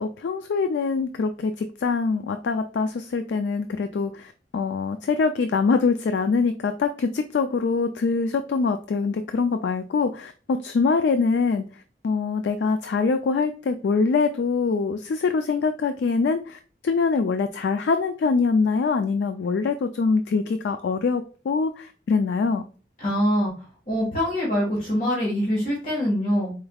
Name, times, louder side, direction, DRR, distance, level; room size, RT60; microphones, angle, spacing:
voice 1, 0.0-11.6 12.0-22.6, left 4 dB, 75° left, 8 dB, 0.3 m, -24 dB
voice 2, 23.0-23.5 23.9-26.5, equal, 45° left, -6 dB, 1.5 m, -24 dB
4.4 x 3.4 x 2.3 m, 0.37 s
head